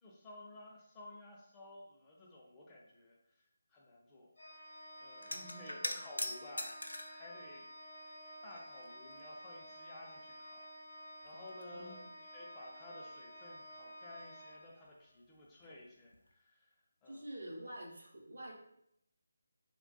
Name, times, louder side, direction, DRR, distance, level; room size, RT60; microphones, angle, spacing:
voice 1, 0.0-3.4 3.7-4.3 5.0-6.8 7.1-7.7 8.4-10.6 11.2-16.8 17.0-17.2, left 2 dB, 15° left, -3 dB, 0.4 m, -54 dB
Organ, 4.4-15.2, equal, 60° left, 0.7 m, -52 dB
sound 1, 5.2-7.2 8.1-8.9 9.2-9.3 10.6-10.7 11.0-12.0 15.6-15.8 16.1-16.3, left 1 dB, 85° left, 0.3 m, -42 dB
voice 2, 5.3-6.0 11.7-12.0 17.1-18.5, right 1 dB, 75° right, 0 dB, 0.6 m, -48 dB
2.2 x 2.2 x 2.5 m, 0.76 s
figure-of-eight pair, 155°, 0 cm